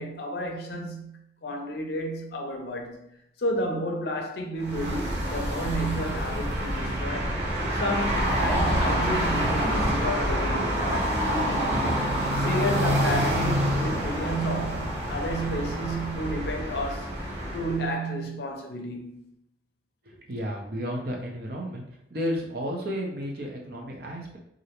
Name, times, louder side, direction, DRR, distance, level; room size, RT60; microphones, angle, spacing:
voice 1, 0.0-3.0 3.4-7.4 7.7-11.7 12.3-17.2 17.5-19.3, equal, 65° left, 0.5 m, -31 dB
sound 1, 4.6-17.9, equal, 80° right, 0.8 m, -27 dB
voice 2, 20.1-21.8 22.1-24.4, equal, 60° right, 0.6 m, -32 dB
2.4 x 2.0 x 2.9 m
head